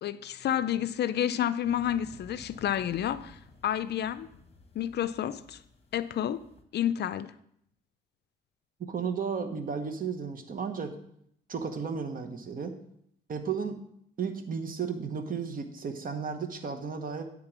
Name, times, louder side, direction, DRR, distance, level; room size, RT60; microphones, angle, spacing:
voice 1, 0.0-4.3 4.8-5.6 5.9-6.4 6.7-7.3, left 10 dB, 55° left, 0.4 m, -30 dB
sound 1, 1.6-6.6, left 3 dB, 30° left, 1.2 m, -54 dB
voice 2, 8.8-11.0 11.5-12.8 13.3-13.8 14.2-17.2, right 6 dB, 45° right, 1.1 m, -34 dB
9.7 x 3.7 x 5.9 m
cardioid pair, 90°, 20 cm